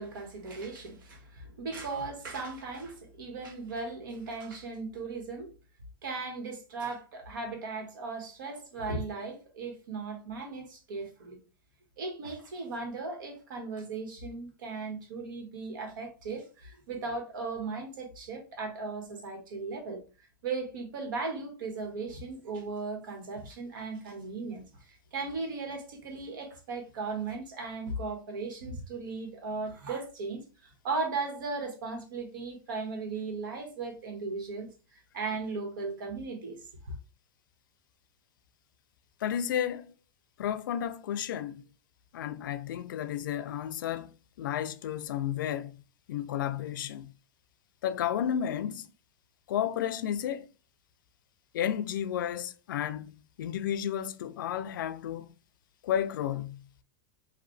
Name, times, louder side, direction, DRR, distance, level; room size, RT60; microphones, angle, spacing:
voice 1, 0.0-5.5 6.0-11.4 12.0-20.0 20.4-34.7 35.1-36.9, right 3 dB, 90° right, 1.7 m, -37 dB
voice 2, 39.2-39.8 40.4-41.6 42.1-44.1 44.4-45.8 46.1-47.1 47.8-48.9 49.5-50.5 51.5-55.3 55.8-56.7, left 10 dB, 90° left, 0.5 m, -32 dB
4.9 x 2.7 x 3.3 m
supercardioid pair, 170°, 11 cm